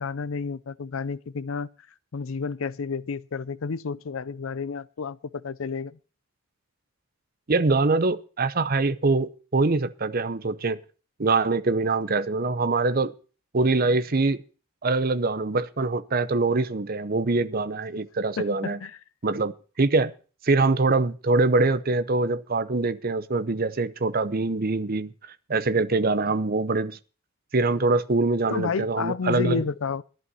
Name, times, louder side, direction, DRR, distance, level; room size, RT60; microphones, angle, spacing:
voice 1, 0.0-1.7 2.1-6.0 18.4-19.0 28.5-30.0, left 5 dB, 70° left, 0.5 m, -31 dB
voice 2, 7.5-10.8 11.2-13.1 13.5-14.4 14.8-18.8 19.2-20.1 20.4-25.1 25.5-27.0 27.5-29.6, right 3 dB, 45° right, 0.7 m, -24 dB
11.0 x 11.0 x 5.5 m
head